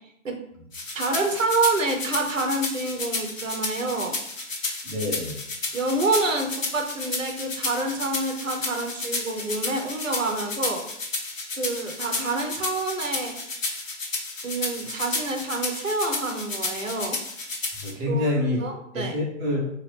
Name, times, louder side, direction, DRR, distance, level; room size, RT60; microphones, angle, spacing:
sound 1, 0.7-17.9, left 3 dB, 90° left, 0.9 m, -32 dB
voice 1, 0.9-4.2 5.7-10.8 11.5-13.3 14.4-17.2 18.1-18.3 18.6-19.1, right 2 dB, 85° right, 4 dB, 0.8 m, -27 dB
voice 2, 4.8-5.4 17.8-18.6 18.9-19.6, left 1 dB, 15° right, -4 dB, 0.6 m, -26 dB
2.8 x 2.5 x 3.3 m, 0.72 s
figure-of-eight pair, 135°, 38 cm